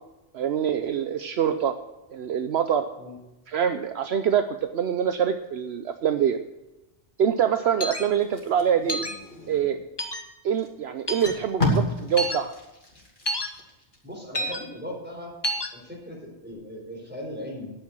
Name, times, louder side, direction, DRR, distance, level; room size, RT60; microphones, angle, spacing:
voice 1, 0.3-1.7 2.1-2.9 3.5-6.4 7.2-9.0 9.5-9.8 10.4-12.5, right 8 dB, 70° right, 8 dB, 0.9 m, -25 dB
sound 1, 7.8-8.0 8.9-9.1 10.0-10.2 11.1-11.3 12.2-12.4 13.3-13.5 14.3-14.6 15.4-15.7, equal, 20° left, 1.2 m, -28 dB
Packing tape duct tape, 8.2-9.9 10.6-10.7 11.0-14.0 14.4-14.6, left 1 dB, 45° left, 2.9 m, -31 dB
voice 2, 14.0-15.3 15.7-17.7, left 1 dB, 10° right, -2 dB, 4.3 m, -38 dB
11.0 x 9.2 x 6.2 m, 0.98 s
omnidirectional pair, 1.2 m